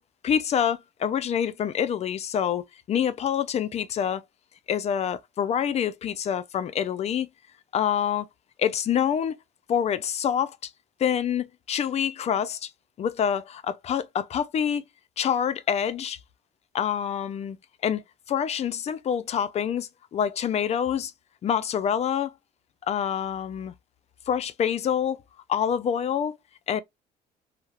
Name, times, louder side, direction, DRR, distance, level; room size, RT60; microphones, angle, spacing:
voice 1, 0.2-4.2 4.7-7.3 7.7-8.3 8.6-9.4 9.7-10.7 11.0-12.7 13.0-14.8 15.2-16.2 16.7-17.6 17.8-21.1 21.4-22.3 22.9-23.7 24.3-25.2 25.5-26.4 26.7-26.8, left 8 dB, 40° left, 0.4 m, -26 dB
2.3 x 2.0 x 2.9 m
cardioid pair, 110°, 17 cm